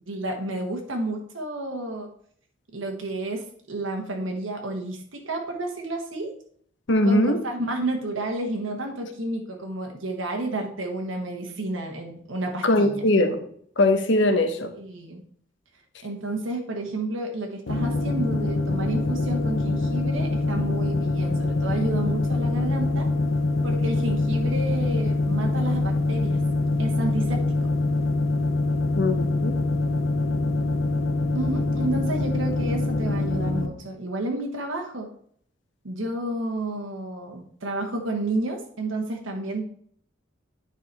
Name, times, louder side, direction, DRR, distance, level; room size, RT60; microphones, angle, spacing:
voice 1, 0.1-2.1 2.7-6.3 7.0-13.0 14.8-15.2 16.0-23.1 23.6-26.4 26.8-27.7 31.3-35.1 35.8-39.7, right 2 dB, 85° right, 2 dB, 1.2 m, -31 dB
voice 2, 6.9-7.4 12.6-13.4 13.8-14.7 29.0-29.6, left 1 dB, 65° left, 7 dB, 1.0 m, -21 dB
sound 1, 17.7-33.7, left 2 dB, 85° left, 0.8 m, -24 dB
9.6 x 4.9 x 4.0 m, 0.62 s
head